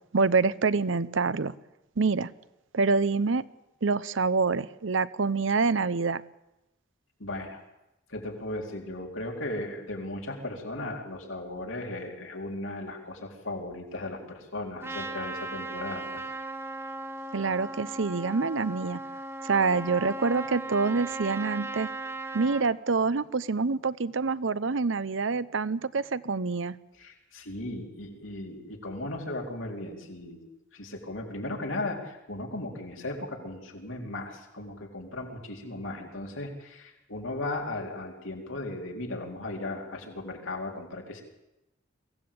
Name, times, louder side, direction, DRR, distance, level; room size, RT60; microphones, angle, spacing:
voice 1, 0.1-1.5 2.0-2.3 2.7-3.4 3.8-6.2 17.3-19.0 19.4-21.9 22.3-26.8, right 4 dB, 70° right, 17 dB, 0.7 m, -26 dB
voice 2, 7.2-7.6 8.1-16.2 27.0-41.2, left 2 dB, 85° left, 1 dB, 4.2 m, -36 dB
Trumpet, 14.8-22.7, right 2 dB, 15° right, 1.6 m, -37 dB
23.5 x 16.5 x 8.7 m, 0.94 s
head